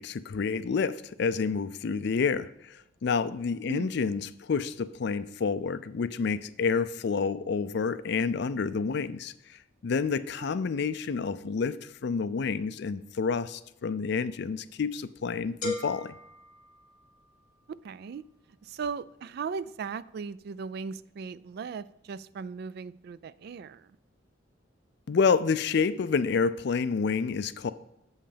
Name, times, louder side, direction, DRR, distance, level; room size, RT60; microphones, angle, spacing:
voice 1, 0.0-2.5 3.0-9.3 9.8-11.8 12.0-16.1 25.1-27.7, left 5 dB, 60° left, 14 dB, 0.4 m, -28 dB
sound 1, 15.6-17.5, left 2 dB, 45° left, 1.5 m, -38 dB
voice 2, 17.7-18.2 18.6-23.9, right 5 dB, 55° right, 17 dB, 0.3 m, -38 dB
7.9 x 5.5 x 5.1 m, 0.81 s
head